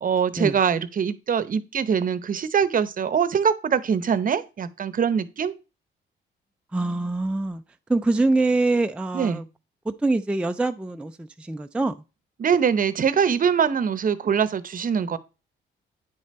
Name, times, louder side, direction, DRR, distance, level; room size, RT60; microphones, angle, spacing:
voice 1, 0.0-5.5 9.1-9.4 12.4-15.2, right 7 dB, 45° right, 0.8 m, -23 dB
voice 2, 6.7-7.6 7.9-9.4 9.9-11.9, right 2 dB, 5° right, 0.4 m, -24 dB
9.5 x 5.1 x 4.3 m
cardioid pair, 90°, 20 cm